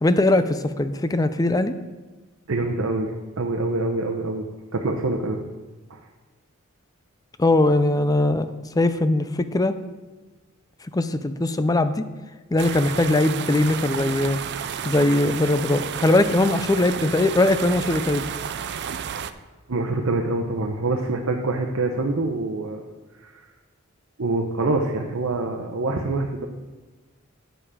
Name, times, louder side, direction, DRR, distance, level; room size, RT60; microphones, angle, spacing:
voice 1, 0.0-1.7 7.4-8.5 8.7-9.8 10.9-12.1 12.5-14.4 14.8-18.2, left 2 dB, 15° left, 11 dB, 0.5 m, -20 dB
voice 2, 2.5-4.5 4.7-5.4 5.9-6.0 19.7-22.8 23.2-23.3 24.2-26.5, right 2 dB, 70° right, 2 dB, 0.8 m, -25 dB
sound 1, 12.6-19.3, right 7 dB, 55° right, 0.5 m, -31 dB
9.1 x 6.9 x 5.0 m, 1.2 s
head